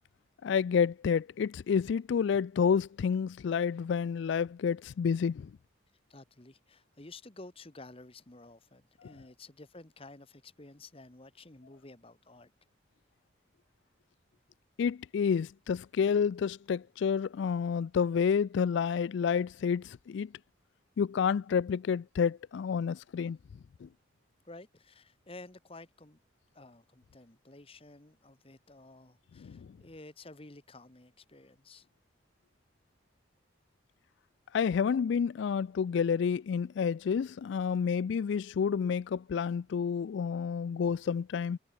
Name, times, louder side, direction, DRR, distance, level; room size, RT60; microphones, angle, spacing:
voice 1, 0.4-5.5 9.0-9.1 14.8-20.3 21.0-23.4 23.8-23.9 29.4-29.6 34.5-41.6, left 6 dB, 65° left, 0.3 m, -29 dB
voice 2, 6.1-12.5 24.4-26.2 26.5-31.9, left 2 dB, 30° left, 1.3 m, -52 dB
head